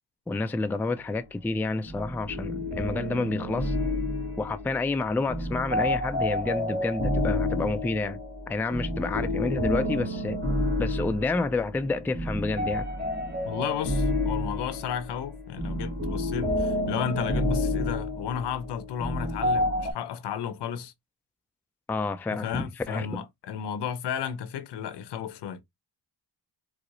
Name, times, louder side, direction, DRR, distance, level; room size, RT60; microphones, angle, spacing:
voice 1, 0.3-3.8 4.4-8.2 8.5-10.4 10.8-12.9 21.9-23.2, left 3 dB, 5° left, 0.3 m, -29 dB
sound 1, 1.9-19.9, left 1 dB, 25° right, 1.4 m, -29 dB
voice 2, 13.4-20.9 22.3-25.6, left 8 dB, 70° left, 0.7 m, -33 dB
4.6 x 2.0 x 2.5 m
cardioid pair, 75°, 42 cm